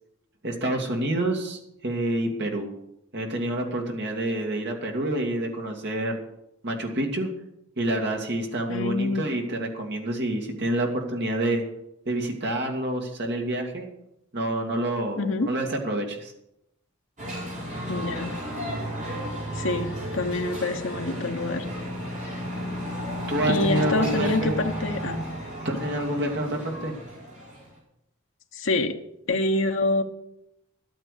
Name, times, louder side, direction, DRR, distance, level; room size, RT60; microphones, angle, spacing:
voice 1, 0.4-2.7 3.1-6.2 6.6-7.3 7.8-11.6 12.1-13.9 14.3-16.3 23.3-24.6 25.6-26.9, right 1 dB, 50° right, 2 dB, 2.3 m, -28 dB
voice 2, 8.7-9.2 15.2-15.5 17.9-18.4 19.5-21.6 23.5-25.2 28.5-28.9 29.3-30.0, left 2 dB, 60° left, 4 dB, 1.0 m, -26 dB
sound 1, 17.2-27.7, equal, 35° right, 5.0 m, -33 dB
12.0 x 9.1 x 6.7 m, 0.81 s
head